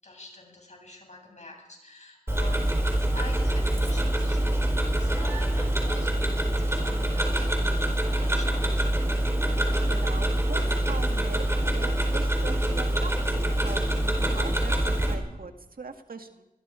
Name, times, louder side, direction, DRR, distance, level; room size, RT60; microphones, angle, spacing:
voice 1, 0.0-8.8, left 2 dB, 50° left, 2 dB, 7.6 m, -46 dB
Tick-tock, 2.3-15.1, right 1 dB, 15° right, 4.7 m, -25 dB
voice 2, 9.9-16.5, right 4 dB, 70° right, 5 dB, 1.9 m, -41 dB
25.5 x 21.0 x 5.0 m, 0.98 s
wide cardioid pair, 90°, 15 cm